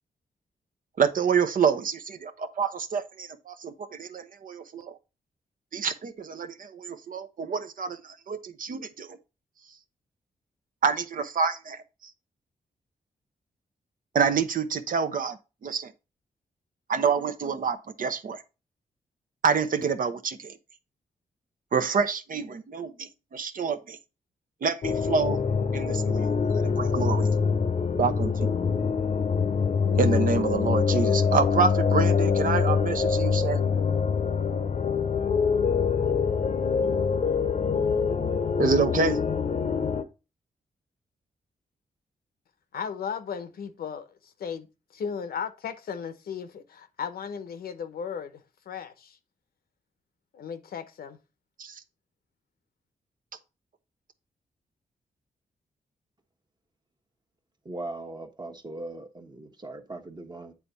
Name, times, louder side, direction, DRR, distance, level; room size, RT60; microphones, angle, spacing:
voice 1, 1.0-5.0 5.7-9.2 10.8-12.1 14.1-15.9 16.9-18.4 19.4-20.6 21.7-24.0 24.6-25.4 25.7-27.3 28.0-28.5 29.9-33.6 38.6-39.2 51.6-51.8, right 6 dB, 60° right, 0.8 m, -27 dB
sound 1, 24.8-40.0, left 6 dB, 50° left, 0.7 m, -25 dB
voice 2, 42.7-44.7 44.9-48.4 48.7-49.2 50.3-51.2, left 7 dB, 80° left, 0.8 m, -36 dB
voice 3, 57.6-60.5, right 2 dB, 30° right, 1.1 m, -39 dB
8.5 x 3.5 x 4.0 m
cardioid pair, 70°, 16 cm